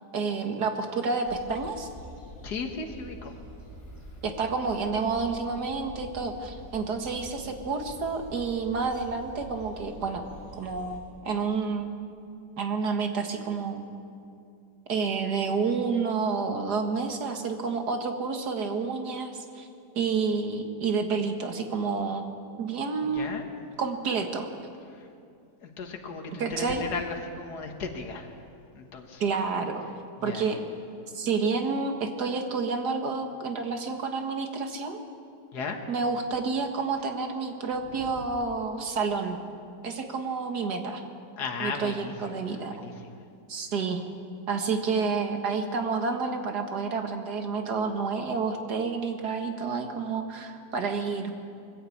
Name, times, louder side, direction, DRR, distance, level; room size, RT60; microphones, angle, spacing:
voice 1, 0.1-1.9 4.2-10.2 10.6-11.9 12.6-13.9 14.9-19.7 20.0-22.3 22.6-23.5 23.8-24.5 26.4-26.9 29.2-29.8 30.2-30.6 31.1-35.0 35.9-39.4 39.8-41.0 41.6-42.7 43.5-44.0 44.5-51.3, right 4 dB, 65° right, 5 dB, 2.2 m, -29 dB
sound 1, 1.2-11.0, equal, 10° left, 5.1 m, -46 dB
voice 2, 2.4-3.4 23.0-23.5 24.9-25.1 25.6-28.5 28.7-29.2 30.2-30.5 35.5-35.8 37.9-38.3 41.4-43.3, left 4 dB, 65° left, 3 dB, 2.2 m, -36 dB
21.5 x 14.5 x 8.6 m, 2.5 s
omnidirectional pair, 1.9 m